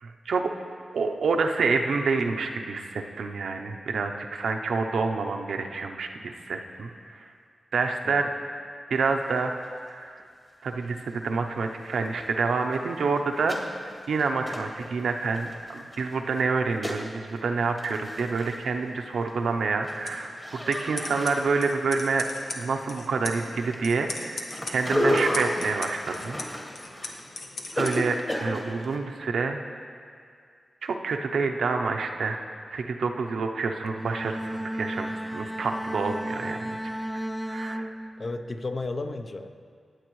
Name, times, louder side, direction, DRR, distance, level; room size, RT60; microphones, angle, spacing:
voice 1, 0.0-0.5 0.9-6.2 6.5-6.9 7.7-8.3 8.9-9.5 9.9-10.2 10.6-13.6 14.1-22.3 22.6-26.4 27.7-29.6 30.8-32.4 32.7-36.7 37.5-37.9, right 4 dB, 90° right, 4 dB, 0.6 m, -28 dB
sound 1, 9.6-9.7 10.2-10.3 11.6-11.7 12.0-12.1 12.5-16.0 16.4-17.1 17.4-17.5 17.6-18.6 19.0-19.4 19.7-22.9 23.2-29.0, equal, 15° left, 1.4 m, -33 dB
sound 2, 19.9-28.0, left 3 dB, 80° left, 1.0 m, -40 dB
Bowed string instrument, 33.9-38.5, right 1 dB, 5° right, 0.3 m, -34 dB
voice 2, 38.2-39.5, left 3 dB, 45° left, 7 dB, 0.6 m, -33 dB
18.0 x 7.7 x 3.1 m, 2.2 s
cardioid pair, 75°, 0 cm